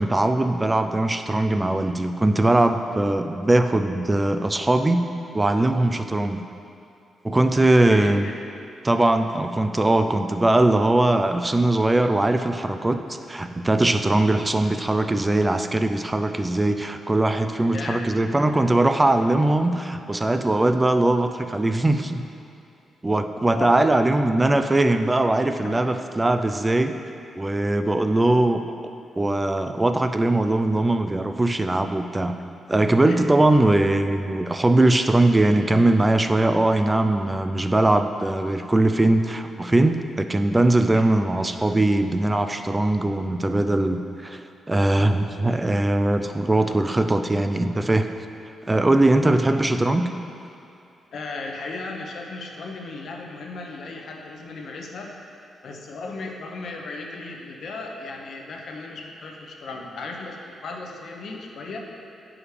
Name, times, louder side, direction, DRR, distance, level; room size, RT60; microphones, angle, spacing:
voice 1, 0.0-5.0 5.3-6.4 7.2-8.3 8.8-13.0 13.3-22.2 23.0-26.9 27.3-28.9 29.2-32.3 32.7-48.1 48.7-50.1, right 2 dB, 10° right, 8 dB, 0.3 m, -21 dB
voice 2, 7.9-8.3 17.7-18.0 23.5-23.8 25.6-25.8 33.1-33.2 40.9-41.1 49.4-49.6 51.1-55.1 55.6-61.8, left 3 dB, 55° left, 1 dB, 0.8 m, -36 dB
9.7 x 4.9 x 4.9 m, 2.6 s
wide cardioid pair, 170°, 0 cm